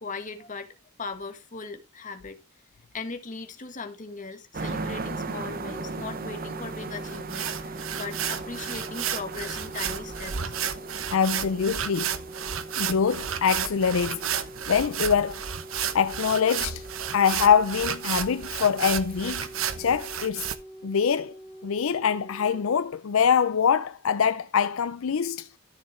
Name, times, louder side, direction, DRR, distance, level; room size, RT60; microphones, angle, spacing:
voice 1, 0.0-2.4 2.9-10.5, left 4 dB, 40° left, 1.6 m, -38 dB
sound 1, 4.5-20.0, right 3 dB, 45° right, 0.9 m, -40 dB
Wind instrument woodwind instrument, 5.5-22.9, right 1 dB, 10° right, 3.9 m, -45 dB
sound 2, 7.0-20.5, right 8 dB, 70° right, 1.0 m, -32 dB
voice 2, 11.1-12.1 12.8-14.3 14.7-15.4 15.9-16.8 17.1-19.5 19.8-20.5 20.8-21.3 21.6-25.5, left 7 dB, 75° left, 0.5 m, -24 dB
13.0 x 7.1 x 3.2 m
head